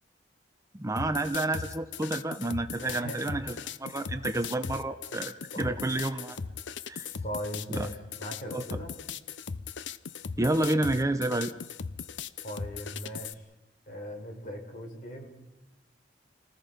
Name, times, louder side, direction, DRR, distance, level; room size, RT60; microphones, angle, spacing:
voice 1, 0.7-6.4 6.9-7.1 7.7-7.9 8.5-8.6 10.4-11.5, right 2 dB, 20° right, 8 dB, 0.8 m, -30 dB
sound 1, 1.0-13.3, left 6 dB, 90° left, 0.7 m, -38 dB
voice 2, 2.8-3.4 5.5-5.8 7.2-9.0 12.4-13.4 13.9-15.3, equal, 50° left, 3 dB, 4.4 m, -39 dB
29.5 x 19.5 x 5.2 m, 1.0 s
head